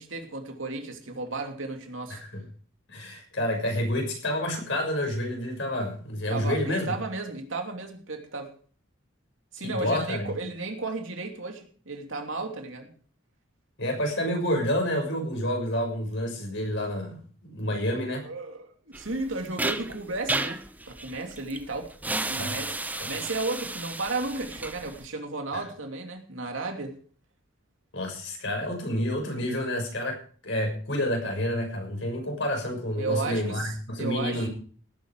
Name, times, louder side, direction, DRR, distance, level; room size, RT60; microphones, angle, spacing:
voice 1, 0.0-2.2 6.3-8.5 9.5-12.9 18.2-21.9 22.3-27.0 33.0-34.5, right 3 dB, 75° right, 4 dB, 2.9 m, -34 dB
voice 2, 2.1-2.4 2.9-7.0 9.6-10.3 13.8-17.1 17.5-18.2 22.4-22.5 23.0-23.1 25.5-25.6 27.9-30.2 30.4-34.5, left 1 dB, 65° left, 2 dB, 6.3 m, -29 dB
sound 1, 18.9-25.1, right 2 dB, 10° right, 0.8 m, -33 dB
18.0 x 9.6 x 4.9 m, 0.44 s
head